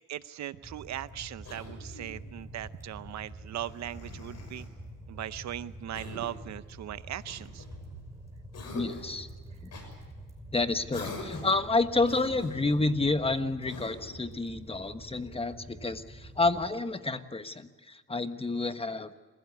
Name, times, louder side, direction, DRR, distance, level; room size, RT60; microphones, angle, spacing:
voice 1, 0.1-4.7 5.1-7.6, right 12 dB, 65° right, 15 dB, 0.7 m, -39 dB
sound 1, 0.6-16.7, right 1 dB, 10° right, 5.8 m, -46 dB
Cough, 1.4-2.2 3.6-4.7 5.9-6.5 7.3-8.1 8.5-9.2 9.7-9.9 10.9-11.6 12.0-12.8 13.6-14.2, left 3 dB, 60° left, 6.7 m, -44 dB
voice 2, 8.7-9.3 9.6-9.7 10.5-19.2, left 3 dB, 20° left, 10 dB, 1.3 m, -29 dB
27.5 x 16.0 x 8.1 m, 1.3 s
cardioid pair, 90°, 30 cm